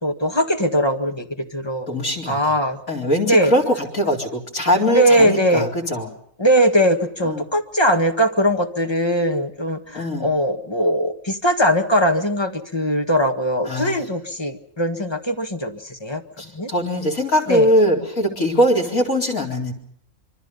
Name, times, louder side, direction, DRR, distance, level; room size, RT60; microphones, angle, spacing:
voice 1, 0.0-2.8 3.3-3.5 4.9-5.7 6.4-16.2 16.5-16.7 17.5-17.7, equal, 20° left, 5 dB, 1.7 m, -20 dB
voice 2, 1.9-2.6 2.9-6.1 7.2-7.4 9.9-10.3 13.7-14.1 16.4-19.7, equal, 80° left, 6 dB, 4.8 m, -21 dB
26.0 x 24.5 x 5.5 m, 0.64 s
omnidirectional pair, 1.4 m